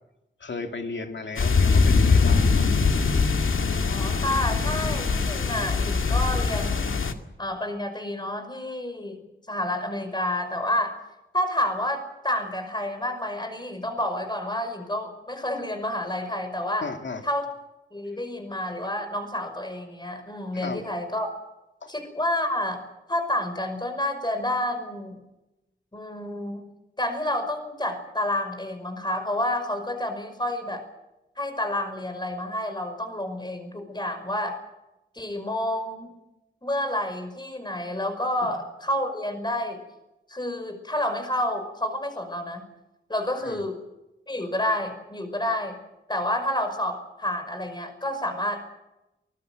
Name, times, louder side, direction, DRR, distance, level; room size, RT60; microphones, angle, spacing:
voice 1, 0.4-2.7 16.8-17.2 20.5-20.8 21.8-21.9 38.4-38.5 43.4-43.6, left 3 dB, 65° left, 5 dB, 2.6 m, -35 dB
sound 1, 1.4-7.1, left 4 dB, 90° left, 2.1 m, -22 dB
voice 2, 3.9-7.0 7.4-11.0 11.3-16.9 17.2-17.5 17.9-21.3 21.9-22.8 23.1-25.2 25.9-26.7 27.0-30.8 31.4-34.6 35.1-36.1 36.6-39.8 40.3-42.6 43.1-43.8 44.3-45.8 46.1-48.6, left 1 dB, 20° left, 8 dB, 5.4 m, -29 dB
24.0 x 20.5 x 7.8 m, 0.94 s
wide cardioid pair, 120°, 20 cm